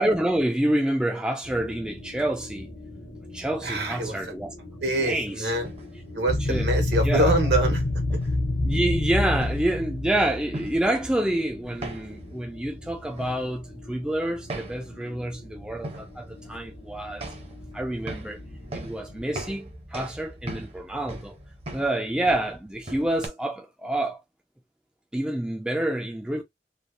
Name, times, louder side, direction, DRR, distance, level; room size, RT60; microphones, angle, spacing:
voice 1, 0.0-2.7 3.3-4.5 5.0-5.5 6.5-6.7 7.0-7.3 8.6-17.3 17.7-18.4 18.7-21.4 21.7-24.2 25.1-26.4, right 1 dB, 5° right, 0.3 m, -27 dB
sound 1, 1.4-19.2, left 1 dB, 75° left, 1.2 m, -44 dB
voice 2, 3.6-4.2 4.8-5.7 6.1-7.8 8.1-8.2, right 1 dB, 75° right, 1.2 m, -25 dB
sound 2, 5.6-23.3, right 1 dB, 35° right, 0.7 m, -42 dB
sound 3, 6.3-10.9, left 2 dB, 50° left, 0.6 m, -26 dB
3.2 x 2.1 x 2.4 m
head